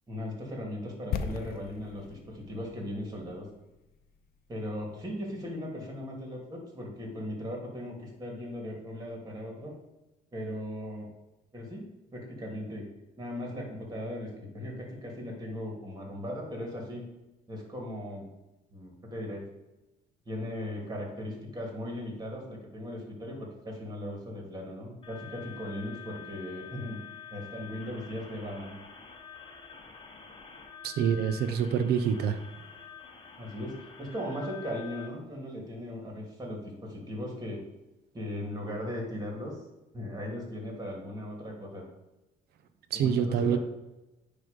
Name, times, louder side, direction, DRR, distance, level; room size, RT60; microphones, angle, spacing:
voice 1, 0.1-3.5 4.5-9.7 10.3-11.1 11.5-12.9 13.2-17.1 17.5-18.3 18.7-19.4 20.3-27.0 27.3-28.7 31.0-31.1 33.4-37.6 38.1-39.6 39.9-41.9 42.9-43.6, left 1 dB, 20° right, 0 dB, 2.8 m, -38 dB
sound 1, 1.1-5.1 5.3-5.4, left 7 dB, 65° left, 0.7 m, -39 dB
sound 2, 25.0-35.1, left 7 dB, 30° left, 1.3 m, -47 dB
voice 2, 30.8-32.4 42.9-43.6, right 7 dB, 75° right, 11 dB, 0.8 m, -26 dB
9.5 x 3.4 x 5.3 m, 1.0 s
cardioid pair, 110°, 17 cm